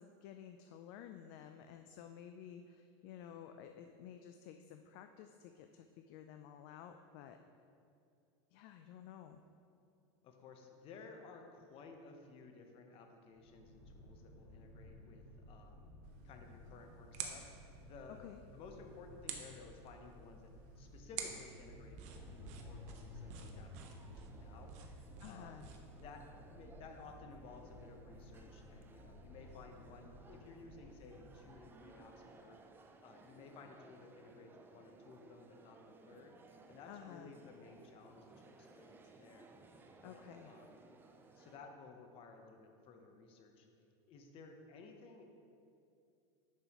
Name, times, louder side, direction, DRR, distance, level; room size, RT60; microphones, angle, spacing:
voice 1, 0.0-7.4 8.5-9.4 18.2-18.4 25.2-25.7 36.9-37.3 40.0-40.5, left 9 dB, 55° left, 7 dB, 0.4 m, -53 dB
voice 2, 10.2-15.9 16.2-18.2 18.5-25.6 26.0-32.6 33.0-36.4 36.7-39.5 40.0-40.8 41.3-43.7 44.1-45.2, left 4 dB, 40° left, 4 dB, 0.9 m, -56 dB
sound 1, 13.3-31.7, left 1 dB, 70° right, 1.7 m, -56 dB
sound 2, 16.0-26.0, right 6 dB, 50° right, 0.9 m, -51 dB
sound 3, 22.0-41.6, right 3 dB, 15° right, 0.4 m, -61 dB
10.5 x 5.4 x 3.0 m, 2.6 s
supercardioid pair, 135°, 15 cm